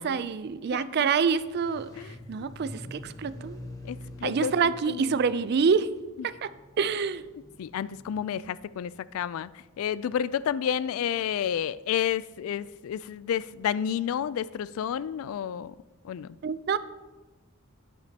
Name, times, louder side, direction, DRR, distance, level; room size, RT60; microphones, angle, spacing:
voice 1, 0.0-3.6 4.2-5.9 6.2-6.5 6.8-7.2 16.4-16.8, right 6 dB, 50° right, 15 dB, 0.4 m, -27 dB
voice 2, 0.7-1.1 2.0-2.1 2.4-2.6 3.8-4.5 4.9-5.2 6.2-6.3 7.6-9.5 9.8-15.7 16.0-16.4, left 8 dB, 75° left, 19 dB, 0.3 m, -30 dB
sound 1, 1.2-8.3, left 1 dB, 15° left, 0.9 m, -46 dB
11.0 x 9.4 x 2.8 m, 1.2 s
head